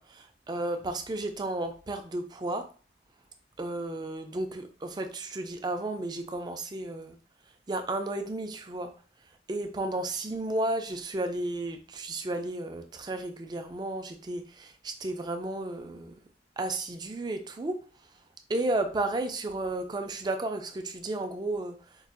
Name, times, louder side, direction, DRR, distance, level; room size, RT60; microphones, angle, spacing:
voice 1, 0.0-2.6 3.6-7.2 7.7-8.9 9.5-16.2 16.6-17.8 18.5-21.8, right 2 dB, 25° right, 7 dB, 0.4 m, -33 dB
4.5 x 2.4 x 2.5 m, 0.39 s
head